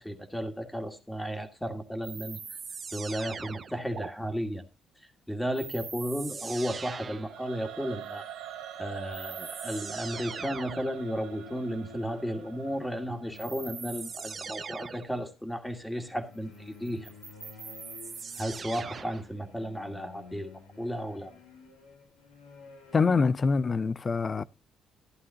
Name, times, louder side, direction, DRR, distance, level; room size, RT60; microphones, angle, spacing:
voice 1, 0.0-2.4 2.9-4.6 5.3-8.3 8.8-17.1 18.4-21.3, equal, 5° left, 2.3 m, -34 dB
sound 1, 2.0-4.1 5.5-7.4 8.6-8.7 9.1-11.0 13.4-15.2 16.9-19.3, right 5 dB, 45° right, 0.5 m, -41 dB
Singing / Musical instrument, 7.2-14.3, right 10 dB, 80° right, 1.5 m, -44 dB
sound 2, 10.9-14.5 15.8-23.2, left 4 dB, 85° left, 2.5 m, -52 dB
voice 2, 22.9-24.4, left 4 dB, 40° left, 0.5 m, -25 dB
12.5 x 11.0 x 2.8 m
hypercardioid pair, 55°, 0 cm